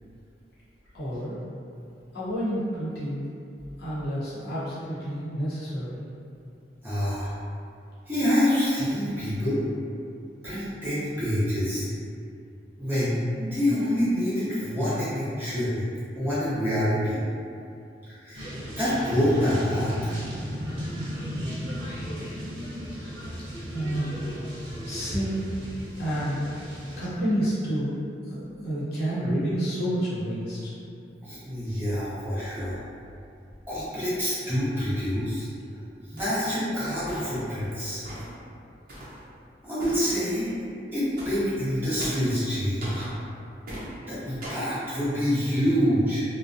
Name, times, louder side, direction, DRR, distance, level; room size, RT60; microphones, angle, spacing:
voice 1, 0.9-1.4 2.1-3.3 3.8-6.0 23.7-24.2 24.8-25.5 26.0-26.5 27.0-27.9 28.3-30.7, equal, 60° left, -10 dB, 0.8 m, -29 dB
voice 2, 6.8-7.3 8.1-9.6 10.4-11.9 12.8-15.8 16.1-17.2 18.2-18.4 18.8-19.9 31.2-32.8 33.7-35.5 36.1-38.0 39.6-40.5 40.9-43.1 44.1-46.2, equal, 10° right, -14 dB, 0.7 m, -26 dB
sound 1, 18.3-27.1, equal, 90° right, 0.7 m, -35 dB
sound 2, 36.2-36.5 37.1-37.5 38.1-38.4 38.9-39.2 39.8-40.1 41.2-41.4 42.0-42.3 42.8-43.1 43.7-43.9 44.4-44.7, right 1 dB, 55° right, 0.7 m, -38 dB
2.5 x 2.1 x 2.5 m, 2.5 s
head